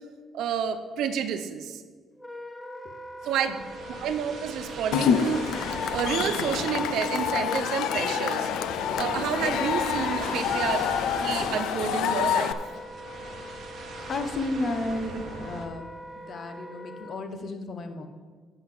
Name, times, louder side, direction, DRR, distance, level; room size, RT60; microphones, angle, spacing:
voice 1, 0.3-1.8 3.2-3.5 4.0-8.5 8.9-10.9 11.2-12.5 15.1-15.2, right 8 dB, 70° right, 9 dB, 0.7 m, -30 dB
Wind instrument woodwind instrument, 2.2-17.1, left 1 dB, 5° left, 0.6 m, -42 dB
sound 1, 3.2-15.7, right 4 dB, 50° right, 1.0 m, -42 dB
Cheering / Crowd, 4.9-12.5, left 8 dB, 85° left, 0.4 m, -27 dB
voice 2, 14.1-15.9 16.3-18.1, left 2 dB, 40° left, 7 dB, 0.9 m, -32 dB
7.9 x 5.7 x 7.6 m, 1.5 s
cardioid pair, 150°, 0 cm